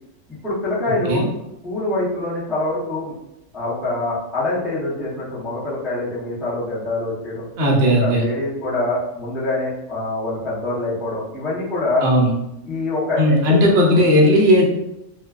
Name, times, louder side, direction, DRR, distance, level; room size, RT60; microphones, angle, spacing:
voice 1, 0.4-1.3 1.6-3.1 3.5-7.4 8.0-12.1 12.6-13.6 13.9-14.0, left 2 dB, ahead, -9 dB, 0.4 m, -24 dB
voice 2, 7.6-8.2 12.0-12.3 13.2-14.6, equal, 60° right, -2 dB, 0.8 m, -15 dB
2.5 x 2.2 x 2.3 m, 0.87 s
omnidirectional pair, 1.3 m